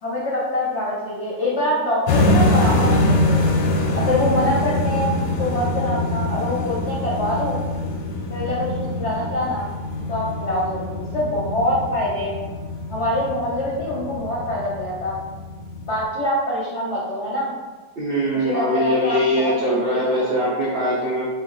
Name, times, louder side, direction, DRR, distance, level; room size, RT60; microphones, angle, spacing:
voice 1, 0.0-3.5 3.9-7.6 8.3-9.7 10.1-12.4 12.9-15.2 15.9-17.5 18.3-20.2, left 1 dB, 55° left, -6 dB, 0.8 m, -25 dB
sound 1, 2.1-16.0, left 1 dB, 80° left, 1.2 m, -24 dB
voice 2, 18.0-21.2, equal, 60° right, -7 dB, 0.6 m, -22 dB
4.1 x 2.4 x 3.9 m, 1.3 s
omnidirectional pair, 1.9 m